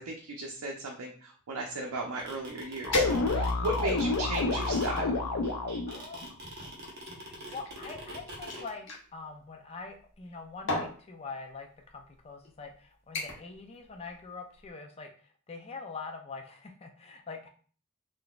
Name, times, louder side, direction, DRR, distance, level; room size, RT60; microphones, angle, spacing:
voice 1, 0.0-5.1, right 2 dB, 80° right, 0 dB, 0.5 m, -36 dB
sound 1, 1.9-8.6, right 1 dB, 45° right, 0.9 m, -44 dB
sound 2, 2.8-6.0, left 3 dB, 90° left, 0.5 m, -29 dB
sound 3, 2.9-3.7 4.3-5.2 6.1-9.0 10.1-10.3 10.7-11.0 11.9-12.0 12.4-12.7 13.1-13.6 13.9-14.2 14.6-14.7, left 2 dB, 55° left, 0.9 m, -35 dB
voice 2, 5.9-6.3 7.2-17.5, left 4 dB, 25° left, 4 dB, 0.4 m, -44 dB
3.8 x 2.6 x 2.3 m, 0.43 s
head